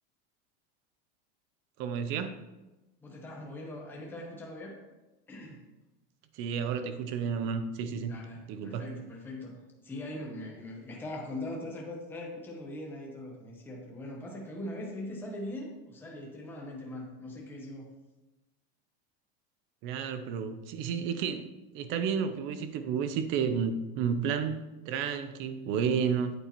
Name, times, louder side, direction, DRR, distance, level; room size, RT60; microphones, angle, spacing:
voice 1, 1.8-2.4 6.3-8.1 8.5-8.9 19.8-21.4 21.7-24.6 24.9-26.3, right 7 dB, 40° right, 10 dB, 0.6 m, -31 dB
voice 2, 3.0-4.7 5.3-5.6 8.1-17.9, left 1 dB, 5° left, -2 dB, 1.0 m, -41 dB
8.4 x 8.2 x 3.0 m, 1.1 s
supercardioid pair, 170°, 30 cm